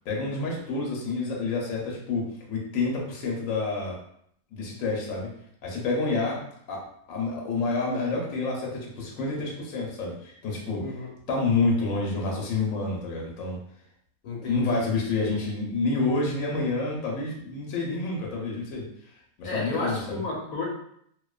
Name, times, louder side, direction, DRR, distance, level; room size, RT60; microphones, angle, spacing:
voice 1, 0.1-4.0 4.5-5.3 5.6-6.4 6.7-6.8 7.1-10.9 11.3-13.6 14.4-18.9 19.4-20.2, left 3 dB, 70° left, -2 dB, 1.0 m, -28 dB
voice 2, 10.8-11.1 14.2-14.9 19.4-20.7, left 3 dB, 90° left, -2 dB, 1.2 m, -32 dB
2.5 x 2.2 x 2.2 m, 0.69 s
omnidirectional pair, 1.5 m